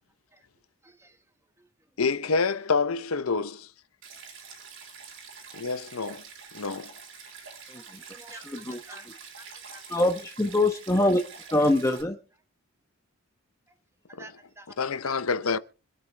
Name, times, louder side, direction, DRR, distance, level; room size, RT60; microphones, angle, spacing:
voice 1, 0.8-1.2 7.7-7.8 8.1-9.1 9.4-9.8 14.2-15.1, right 2 dB, 15° right, 1.3 m, -49 dB
voice 2, 2.0-3.7 5.5-6.2 6.5-6.9 14.1-14.3 14.8-15.6, left 4 dB, 75° left, 0.8 m, -27 dB
Stream, 4.0-12.0, right 5 dB, 60° right, 3.6 m, -46 dB
voice 3, 8.3-8.8 9.9-11.2 11.5-12.2, left 1 dB, 15° left, 1.0 m, -24 dB
25.5 x 8.8 x 3.4 m
head